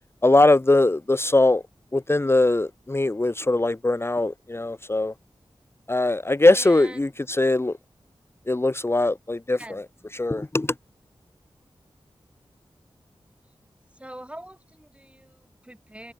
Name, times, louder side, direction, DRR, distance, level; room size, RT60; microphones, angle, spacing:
voice 1, 0.2-1.6 1.9-5.1 5.9-7.8 8.5-9.8 10.1-10.7, left 2 dB, 25° left, 0.9 m, -21 dB
voice 2, 6.5-7.1 9.6-10.1 13.9-16.1, right 1 dB, 10° right, 3.1 m, -43 dB
wide cardioid pair, 60°, 10 cm